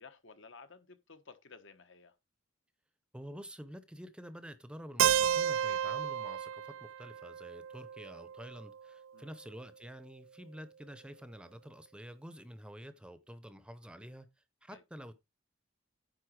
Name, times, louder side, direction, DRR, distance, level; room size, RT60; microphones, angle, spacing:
voice 1, 0.0-2.1 9.1-9.3 14.7-14.8, left 4 dB, 70° left, 1.3 m, -54 dB
voice 2, 3.1-14.3 14.6-15.1, equal, 5° right, 0.7 m, -48 dB
Keyboard (musical), 5.0-8.9, right 9 dB, 85° right, 0.4 m, -32 dB
9.6 x 4.0 x 6.3 m
head